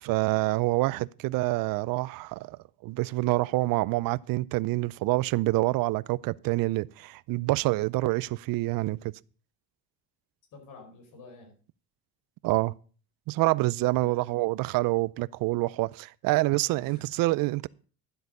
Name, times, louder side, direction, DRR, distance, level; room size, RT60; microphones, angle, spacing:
voice 1, 0.0-2.6 2.8-9.1 12.4-12.7 13.3-17.7, right 20 dB, 65° right, 0.5 m, -27 dB
voice 2, 10.5-11.5 13.9-14.4 16.8-17.1, left 2 dB, 55° left, 5.2 m, -49 dB
12.0 x 8.0 x 5.3 m
cardioid pair, 140°, 37 cm